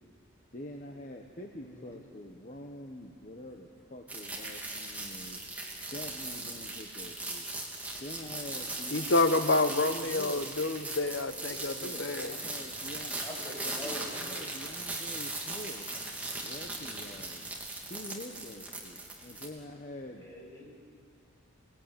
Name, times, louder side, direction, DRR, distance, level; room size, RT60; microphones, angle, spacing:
voice 1, 0.5-5.4 5.9-7.5 8.0-10.5 11.8-13.2 13.6-15.9 16.4-17.4 17.9-20.3, left 1 dB, 35° left, 2 dB, 1.3 m, -45 dB
voice 2, 1.6-1.9 13.2-14.4 20.2-20.7, left 1 dB, 15° left, -4 dB, 7.2 m, -44 dB
sound 1, 4.1-19.5, right 2 dB, 10° right, 2.9 m, -39 dB
voice 3, 8.9-12.4, left 2 dB, 60° left, 10 dB, 1.1 m, -28 dB
27.5 x 19.5 x 9.2 m, 2.4 s
head